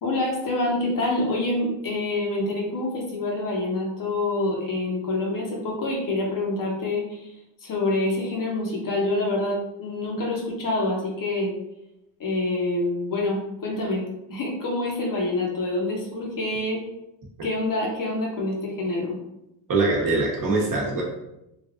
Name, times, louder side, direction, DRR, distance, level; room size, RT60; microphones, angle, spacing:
voice 1, 0.0-7.3 7.6-11.5 12.2-14.0 14.3-16.8 17.4-19.2, left 2 dB, 40° left, -1 dB, 0.9 m, -26 dB
voice 2, 19.7-21.0, right 3 dB, 40° right, -2 dB, 1.0 m, -23 dB
3.3 x 2.4 x 2.4 m, 0.87 s
supercardioid pair, 85°, 49 cm